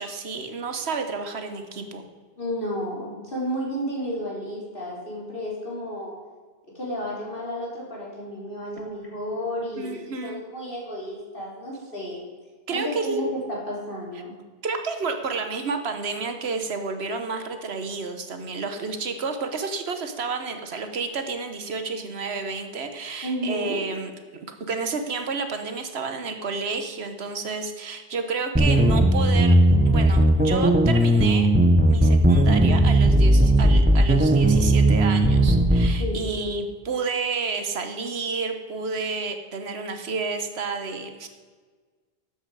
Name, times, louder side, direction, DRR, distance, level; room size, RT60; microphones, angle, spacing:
voice 1, 0.0-2.1 9.8-10.4 12.7-13.2 14.6-29.6 29.8-31.5 31.9-41.3, right 4 dB, 75° right, 7 dB, 1.3 m, -30 dB
voice 2, 2.4-6.1 6.8-12.3 12.7-14.4 23.2-23.8 36.0-36.4, equal, 55° left, -4 dB, 3.4 m, -32 dB
sound 1, 28.6-35.9, right 1 dB, 10° right, 0.7 m, -17 dB
13.0 x 8.1 x 4.8 m, 1.5 s
omnidirectional pair, 1.1 m